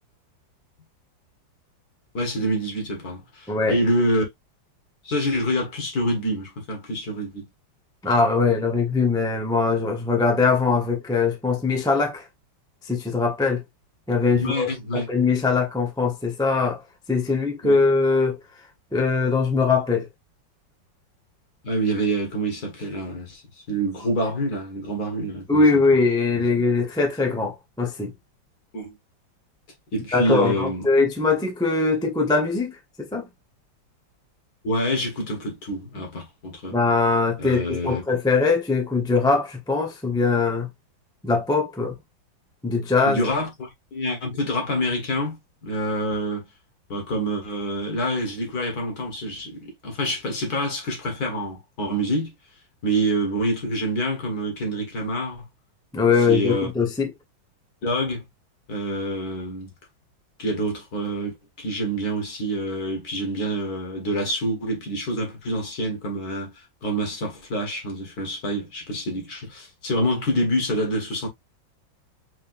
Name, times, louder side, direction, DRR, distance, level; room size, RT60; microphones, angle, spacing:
voice 1, 2.1-4.2 5.0-7.5 14.3-15.1 17.6-17.8 21.6-23.4 23.7-25.7 26.3-26.5 28.7-29.0 29.9-30.9 34.6-36.8 37.4-38.0 43.0-46.5 46.9-52.3 52.8-55.4 56.3-56.7 57.8-58.2 58.7-59.7 60.4-71.3, right 1 dB, 55° left, 2.1 m, -27 dB
voice 2, 3.5-3.8 8.0-12.2 12.9-13.6 14.1-14.7 14.9-16.8 17.1-18.4 18.9-20.1 25.5-28.1 30.1-33.3 36.7-40.7 41.2-41.9 42.6-43.2 55.9-57.1, left 4 dB, 5° left, 0.4 m, -21 dB
4.9 x 3.5 x 2.6 m
omnidirectional pair, 2.1 m